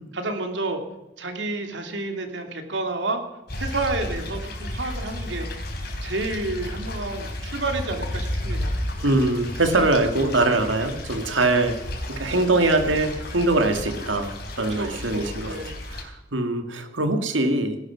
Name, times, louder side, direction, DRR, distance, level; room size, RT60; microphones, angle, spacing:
voice 1, 0.1-0.8 1.2-3.2 3.6-8.7 14.5-15.7, right 2 dB, 70° right, 5 dB, 2.7 m, -30 dB
sound 1, 3.5-16.0, left 1 dB, 55° left, 3.8 m, -33 dB
voice 2, 9.0-11.8 12.1-14.3 14.6-15.6 15.9-17.8, right 2 dB, 85° right, 7 dB, 2.2 m, -22 dB
19.0 x 11.5 x 6.0 m, 0.97 s
head